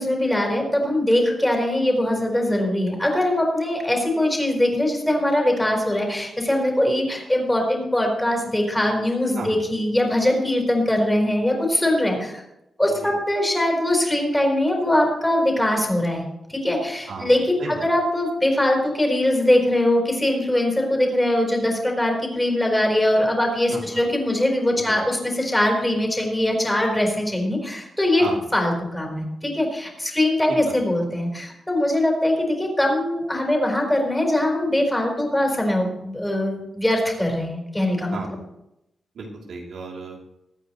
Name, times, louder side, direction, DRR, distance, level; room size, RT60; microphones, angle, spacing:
voice 1, 0.0-12.4 12.8-16.2 16.5-28.3 28.5-38.2, left 1 dB, 10° left, 1 dB, 4.2 m, -22 dB
voice 2, 17.1-17.8 23.7-23.8 24.8-25.0 28.2-28.5 30.5-30.7 38.1-38.3 39.1-40.3, right 3 dB, 85° right, -1 dB, 3.0 m, -34 dB
22.5 x 9.2 x 3.1 m, 0.84 s
wide cardioid pair, 145°, 0 cm